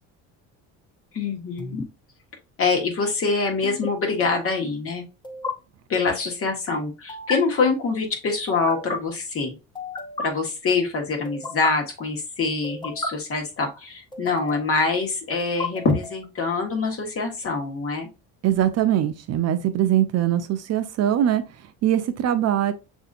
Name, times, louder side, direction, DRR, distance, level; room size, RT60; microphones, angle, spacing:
voice 1, 1.1-1.8 2.6-5.0 5.9-9.5 10.2-18.1, left 4 dB, 40° left, 1.4 m, -25 dB
sound 1, 1.6-1.9 3.6-3.9 5.2-5.5 7.1-7.4 8.5-9.0 9.8-10.3 11.3-11.7 12.6-13.1 14.1-14.7 15.4-16.3, left 3 dB, 15° left, 0.5 m, -33 dB
voice 2, 18.4-21.4 21.8-22.7, right 11 dB, 45° right, 0.5 m, -22 dB
6.7 x 2.7 x 2.5 m
cardioid pair, 125°, 35 cm